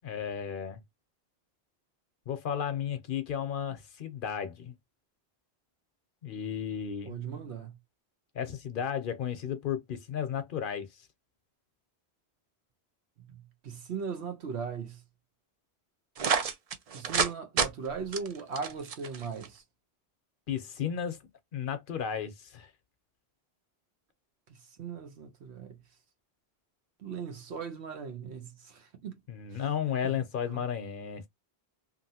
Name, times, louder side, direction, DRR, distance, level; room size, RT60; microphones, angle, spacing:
voice 1, 0.0-0.8 2.3-4.7 6.2-7.2 8.3-11.1 20.5-21.2 21.5-22.7 29.3-31.3, left 8 dB, 60° left, 0.7 m, -34 dB
voice 2, 7.1-7.7 13.3-13.4 13.6-15.0 16.9-19.6 24.8-25.8 27.0-29.2 29.5-29.6 30.0-30.1 30.5-30.6, right 6 dB, 90° right, 1.1 m, -38 dB
sound 1, 16.2-17.3 17.6-17.7 18.1-19.5, right 6 dB, 55° right, 0.4 m, -28 dB
2.9 x 2.5 x 2.7 m
omnidirectional pair, 1.1 m